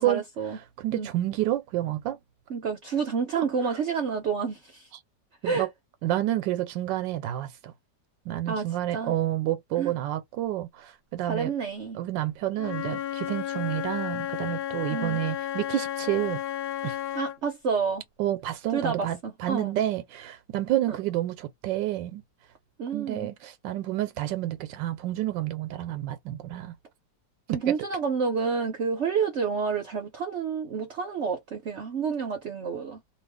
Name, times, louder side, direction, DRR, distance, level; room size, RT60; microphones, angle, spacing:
voice 1, 0.0-0.6 0.9-1.1 2.5-4.9 5.4-5.7 8.5-8.7 8.9-9.1 9.8-9.9 11.2-12.0 14.9-15.2 17.1-18.0 18.7-19.7 20.9-21.0 22.8-23.3 27.5-33.0, right 5 dB, 60° right, 0.7 m, -29 dB
voice 2, 0.8-2.2 3.4-3.8 5.4-5.7 6.0-7.7 8.3-11.5 11.9-16.4 16.8-17.0 18.2-22.2 22.9-26.7 27.7-27.8, right 14 dB, 85° right, 1.3 m, -29 dB
Wind instrument woodwind instrument, 12.5-17.4, left 11 dB, 65° left, 1.3 m, -32 dB
3.0 x 2.3 x 3.3 m
omnidirectional pair, 2.0 m